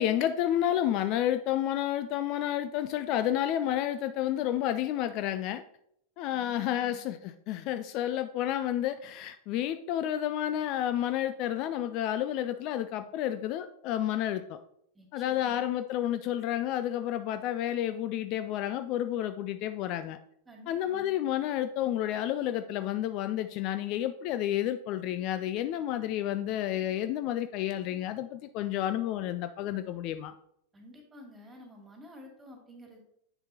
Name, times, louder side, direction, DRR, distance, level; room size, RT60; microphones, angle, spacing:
voice 1, 0.0-5.6 6.2-14.6 15.1-20.2 20.7-30.3, left 11 dB, 40° left, 9 dB, 0.3 m, -30 dB
voice 2, 6.3-7.1 14.9-15.7 20.5-21.1 30.7-33.0, left 1 dB, 15° right, 1 dB, 2.1 m, -51 dB
8.1 x 6.6 x 2.8 m, 0.71 s
figure-of-eight pair, 90°, 0 cm